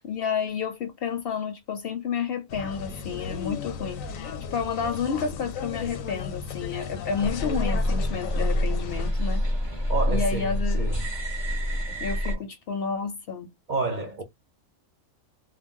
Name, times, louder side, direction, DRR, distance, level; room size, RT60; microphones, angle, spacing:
voice 1, 0.0-10.9 12.0-13.5, left 6 dB, 65° left, 0.6 m, -31 dB
sound 1, 2.5-9.1, left 6 dB, 85° left, 1.0 m, -35 dB
sound 2, 7.2-12.4, equal, 25° right, 0.7 m, -27 dB
voice 2, 9.9-11.0 12.3-12.4 13.7-14.2, right 3 dB, 65° right, 0.4 m, -30 dB
2.4 x 2.2 x 3.5 m
omnidirectional pair, 1.4 m